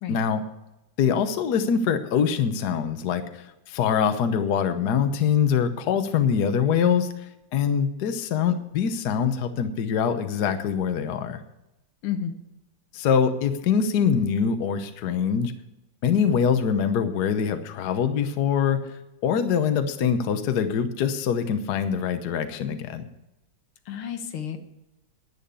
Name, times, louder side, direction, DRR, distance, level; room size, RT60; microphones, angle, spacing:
voice 1, 0.1-0.4 1.0-7.1 7.5-11.4 12.9-15.5 16.0-23.1, left 7 dB, 60° left, 8 dB, 1.4 m, -24 dB
voice 2, 12.0-12.4 23.9-24.6, left 8 dB, 90° left, 7 dB, 2.0 m, -31 dB
10.5 x 9.3 x 6.9 m, 0.92 s
omnidirectional pair, 2.3 m